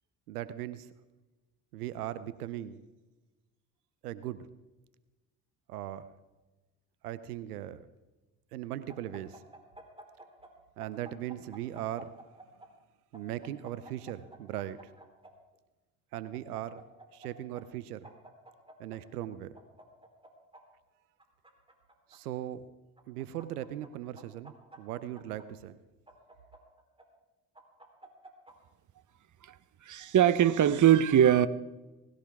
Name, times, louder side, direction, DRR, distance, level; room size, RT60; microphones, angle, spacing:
voice 1, 0.3-0.9 1.7-2.8 4.0-4.5 5.7-6.1 7.0-7.9 8.5-9.4 10.8-12.2 13.1-14.9 16.1-16.8 17.1-18.1 18.8-19.6 22.1-22.7 23.1-25.8, right 12 dB, 90° right, 15 dB, 0.7 m, -39 dB
sound 1, 8.9-10.5 10.8-12.7 13.1-15.3 16.1-17.3 17.5-17.6 18.0-19.0 19.5-20.6 21.2-22.2 23.0-23.9 24.2-25.4 26.1-27.0 27.6-28.5, right 2 dB, 10° right, 3.9 m, -52 dB
voice 2, 29.9-31.5, right 10 dB, 40° right, 16 dB, 1.0 m, -21 dB
19.5 x 16.5 x 3.6 m, 1.1 s
hypercardioid pair, 50°, 44 cm